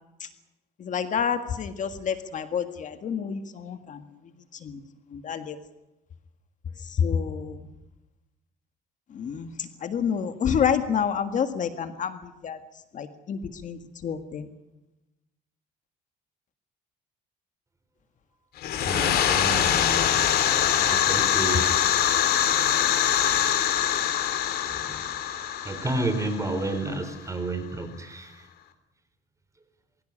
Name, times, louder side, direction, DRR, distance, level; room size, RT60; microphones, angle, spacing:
voice 1, 0.8-4.0 4.5-4.8 5.1-5.6 6.8-7.7 9.1-12.6 12.9-14.5, left 7 dB, 50° left, 9 dB, 1.8 m, -29 dB
sound 1, 18.6-27.1, left 10 dB, 70° left, 3.1 m, -24 dB
voice 2, 18.8-20.1 20.9-22.0 23.1-23.3 24.6-25.0 25.6-28.5, right 2 dB, 20° right, 9 dB, 4.2 m, -31 dB
22.5 x 16.5 x 9.9 m, 0.96 s
cardioid pair, 110°, 17 cm